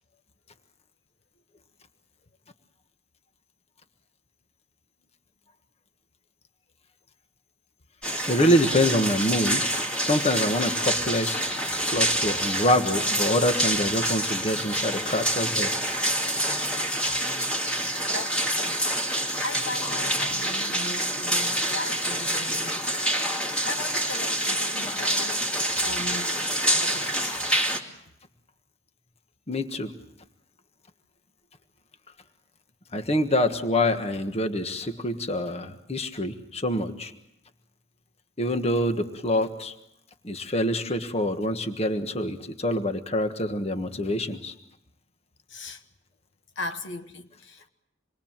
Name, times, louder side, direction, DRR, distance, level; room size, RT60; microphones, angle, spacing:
Water falling in mine, 8.0-27.8, right 1 dB, 5° left, 2.4 m, -27 dB
voice 1, 8.3-11.4 11.9-15.7 17.0-17.2 29.5-29.9 32.9-37.1 38.4-39.7 40.2-44.5, left 1 dB, 30° left, 1.5 m, -26 dB
voice 2, 18.1-23.0 23.3-25.5 25.8-26.4 26.7-27.4 45.5-45.8 46.5-47.7, left 3 dB, 65° left, 1.4 m, -37 dB
27.5 x 22.0 x 7.4 m
head